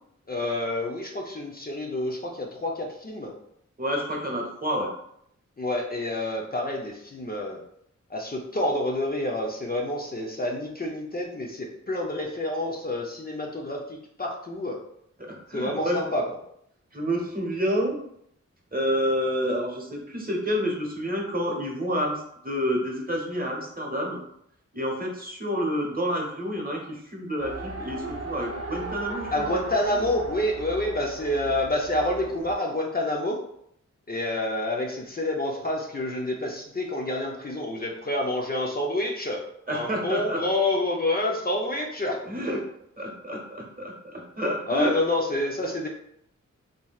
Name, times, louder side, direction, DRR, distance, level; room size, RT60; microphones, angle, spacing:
voice 1, 0.3-3.3 5.6-7.6 8.1-14.8 15.5-16.2 29.3-33.4 34.1-42.2 42.5-42.6 44.7-45.9, left 1 dB, 30° left, -1 dB, 0.5 m, -28 dB
voice 2, 3.8-4.9 15.5-16.1 16.9-18.0 18.7-24.2 24.7-29.5 39.7-40.4 42.2-42.6 43.0-44.9, equal, 30° right, -1 dB, 0.9 m, -29 dB
Race car auto racing, 27.4-32.6, right 3 dB, 50° right, 0.6 m, -37 dB
3.1 x 2.6 x 2.3 m, 0.72 s
cardioid pair, 45°, 30 cm